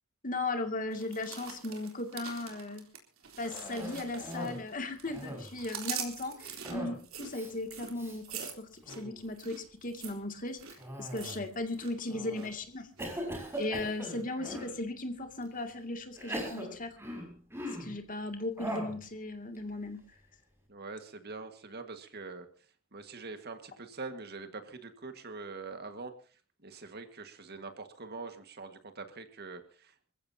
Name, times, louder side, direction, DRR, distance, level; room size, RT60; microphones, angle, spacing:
voice 1, 0.2-2.8 3.4-10.6 11.0-12.9 13.6-17.0 17.7-20.0, left 2 dB, 40° left, 5 dB, 2.4 m, -37 dB
sound 1, 0.9-4.7 5.0-11.9 12.2-12.5 13.0-13.7 14.1-14.2, right 8 dB, 70° right, 3.7 m, -44 dB
Cough, 3.4-4.6 5.0-5.6 6.6-7.0 7.3-7.5 7.9-8.2 8.7-9.2 10.7-11.5 12.1-12.5 13.0-14.7 15.4-15.5 16.1-18.0 18.6-19.0, equal, 10° right, 5.9 m, -40 dB
voice 2, 20.7-22.5 22.9-30.1, right 3 dB, 50° right, 7 dB, 1.8 m, -44 dB
26.5 x 15.0 x 2.8 m, 0.37 s
head